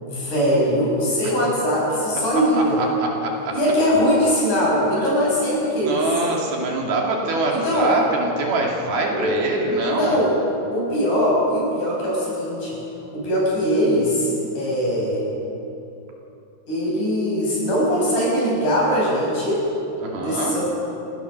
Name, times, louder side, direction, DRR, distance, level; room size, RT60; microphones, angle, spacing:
voice 1, 0.1-2.8 3.5-6.0 7.5-7.9 9.1-10.3 10.7-12.8 13.1-14.3 14.5-15.2 16.7-19.6 20.2-20.6, equal, 45° left, -4 dB, 8.2 m, -21 dB
voice 2, 2.5-3.6 5.0-5.2 5.8-10.2 20.0-20.6, right 2 dB, 65° right, -1 dB, 4.0 m, -24 dB
29.0 x 16.5 x 6.7 m, 2.9 s
omnidirectional pair, 5.0 m